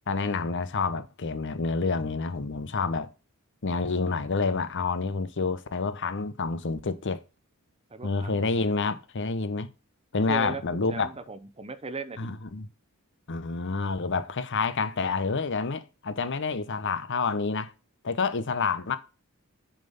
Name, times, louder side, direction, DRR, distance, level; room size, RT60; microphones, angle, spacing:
voice 1, 0.1-3.1 3.6-7.2 8.0-9.7 10.1-11.1 12.2-12.7 13.3-17.7 18.0-19.0, left 4 dB, 55° left, 0.8 m, -28 dB
voice 2, 7.9-8.5 10.3-12.3, right 3 dB, 25° right, 0.8 m, -38 dB
7.3 x 5.4 x 5.5 m
head